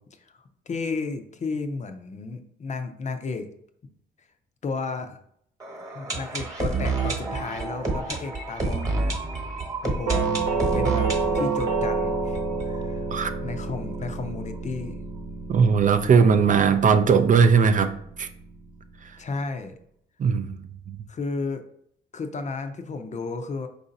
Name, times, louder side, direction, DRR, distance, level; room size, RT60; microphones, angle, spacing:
voice 1, 0.2-3.5 4.6-5.2 5.9-9.2 9.8-10.4 10.7-13.1 13.4-15.0 19.2-19.7 21.1-21.6 22.1-23.7, left 4 dB, 35° left, 0.6 m, -33 dB
sound 1, 5.6-13.4 13.6-13.7 13.9-14.0 14.6-14.7, right 3 dB, 15° right, 1.2 m, -29 dB
Doorbell, 10.1-18.9, right 4 dB, 80° right, 1.0 m, -29 dB
voice 2, 15.5-18.3 20.2-20.5, right 6 dB, 40° right, 0.4 m, -19 dB
4.7 x 2.6 x 4.0 m
cardioid pair, 90°, 20 cm